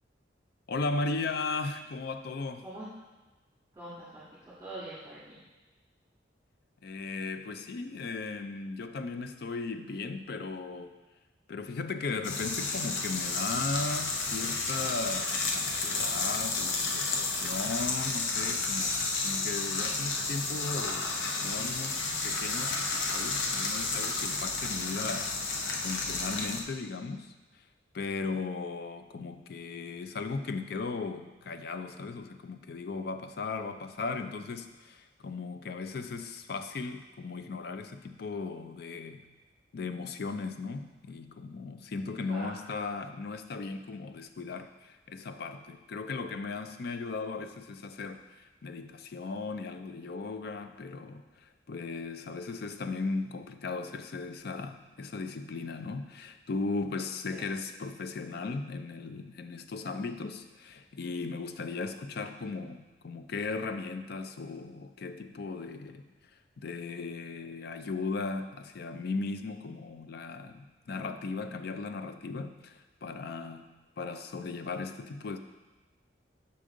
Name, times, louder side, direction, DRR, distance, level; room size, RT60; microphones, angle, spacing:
voice 1, 0.7-2.6 6.8-10.9 11.5-21.1 21.4-25.3 25.8-27.3 27.9-39.3 39.7-66.1 66.6-73.7 74.0-75.4, left 3 dB, 55° left, 8 dB, 0.4 m, -37 dB
voice 2, 3.7-5.4 26.9-27.2 42.3-42.5 57.3-57.4 70.9-71.0 74.0-74.1, right 1 dB, 15° right, -12 dB, 1.8 m, -44 dB
sound 1, 12.2-26.6, left 3 dB, 90° left, 0.7 m, -31 dB
6.8 x 5.2 x 3.7 m, 1.2 s
head